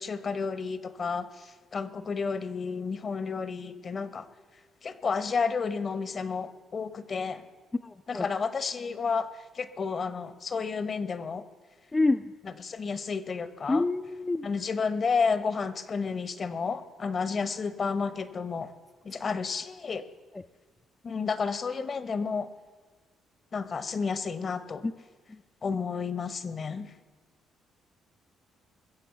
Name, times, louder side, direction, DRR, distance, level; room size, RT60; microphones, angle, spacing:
voice 1, 0.0-4.3 4.8-7.4 8.1-9.3 9.5-11.4 12.6-13.8 14.4-18.7 19.0-20.0 21.0-22.5 23.5-24.9 25.6-26.9, left 5 dB, 45° left, 13 dB, 0.9 m, -31 dB
voice 2, 7.8-8.3 11.9-12.3 13.7-14.5 20.3-20.4 24.8-24.9 25.3-25.4 25.7-25.8, left 2 dB, 20° left, 6 dB, 0.4 m, -27 dB
21.5 x 7.6 x 7.1 m, 1.4 s
supercardioid pair, 75°, 0 cm